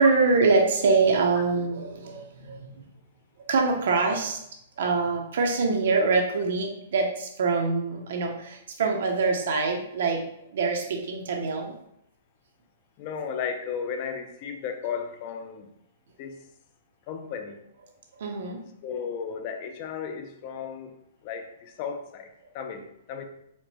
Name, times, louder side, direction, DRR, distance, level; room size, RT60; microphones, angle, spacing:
voice 1, 0.0-2.9 3.5-4.4 4.8-10.3 10.5-11.7 18.1-18.6, right 4 dB, 60° right, 2 dB, 0.5 m, -24 dB
voice 2, 13.0-15.7 16.2-16.4 17.1-17.6 18.8-21.0 21.2-23.2, left 6 dB, 30° left, 6 dB, 0.4 m, -34 dB
4.2 x 2.0 x 2.8 m, 0.76 s
hypercardioid pair, 170°, 0 cm